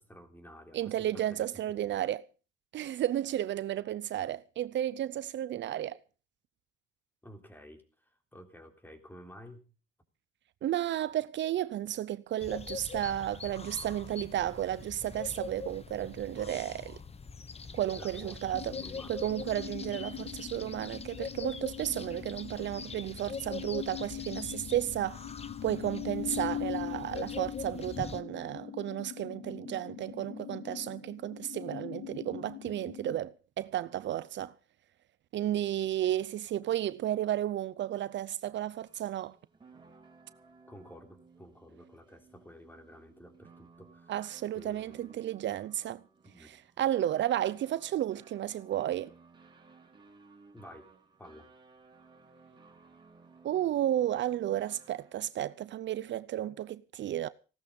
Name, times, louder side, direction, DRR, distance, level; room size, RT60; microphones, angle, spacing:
voice 1, 0.0-2.0 7.2-9.7 18.0-18.4 18.7-19.3 40.7-44.1 44.5-45.1 46.3-46.5 50.5-50.9 51.2-51.5, equal, 10° left, 3.7 m, -52 dB
voice 2, 0.7-2.3 2.7-6.0 10.6-17.0 17.7-18.7 19.1-25.2 25.6-34.5 35.3-39.4 44.1-46.0 46.4-49.1 53.4-57.3, right 12 dB, 65° right, 0.7 m, -33 dB
sound 1, 12.4-28.2, left 5 dB, 30° left, 1.2 m, -43 dB
sound 2, 18.5-33.2, left 10 dB, 75° left, 1.8 m, -42 dB
sound 3, 38.6-55.3, right 4 dB, 25° right, 4.8 m, -59 dB
16.5 x 13.0 x 5.3 m
cardioid pair, 90°, 20 cm